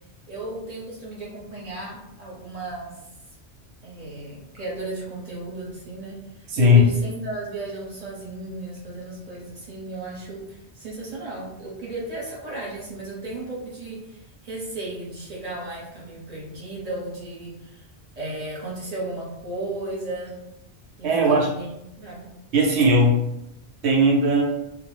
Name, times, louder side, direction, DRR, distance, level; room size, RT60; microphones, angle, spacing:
voice 1, 0.3-3.0 3.8-17.9 18.2-20.4 21.0-22.3, right 2 dB, 40° right, -5 dB, 0.8 m, -35 dB
voice 2, 6.5-7.0 21.0-21.5 22.5-23.2 23.8-24.4, left 1 dB, 75° right, 0 dB, 0.8 m, -17 dB
2.1 x 2.0 x 3.0 m, 0.84 s
omnidirectional pair, 1.2 m